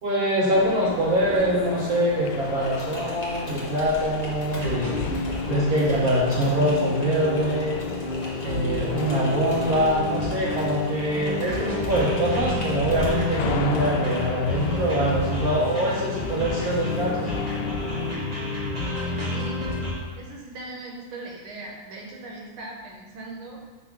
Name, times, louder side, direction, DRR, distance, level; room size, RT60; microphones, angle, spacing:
voice 1, 0.0-5.1 5.5-7.7 8.4-17.3, right 1 dB, 55° right, -4 dB, 1.1 m, -24 dB
sound 1, 0.5-18.1, left 5 dB, 80° left, 1.4 m, -35 dB
Typing, 2.6-14.3, left 1 dB, 25° left, 0.9 m, -41 dB
sound 2, 4.5-19.9, left 2 dB, 30° right, 0.9 m, -30 dB
voice 2, 18.7-19.7 20.2-23.7, right 2 dB, 75° right, -1 dB, 1.8 m, -39 dB
4.6 x 3.9 x 5.7 m, 1.4 s
omnidirectional pair, 2.3 m